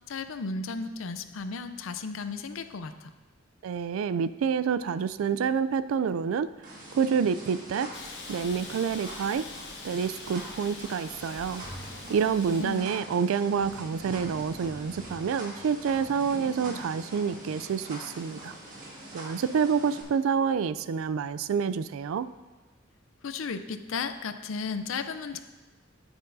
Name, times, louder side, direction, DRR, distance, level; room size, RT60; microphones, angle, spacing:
voice 1, 0.1-3.1 12.5-12.9 23.2-25.4, left 4 dB, 80° left, 10 dB, 0.5 m, -34 dB
voice 2, 3.6-6.5 6.9-7.9 8.3-9.5 9.8-11.7 12.1-18.5 19.1-22.3, right 6 dB, 90° right, 15 dB, 0.3 m, -28 dB
sound 1, 6.6-20.0, right 1 dB, 40° right, 1.8 m, -44 dB
Hiss, 7.9-12.9, left 4 dB, 60° left, 1.0 m, -45 dB
Sink (filling or washing), 11.1-18.4, left 1 dB, 15° left, 2.2 m, -48 dB
9.4 x 8.9 x 2.6 m, 1.2 s
head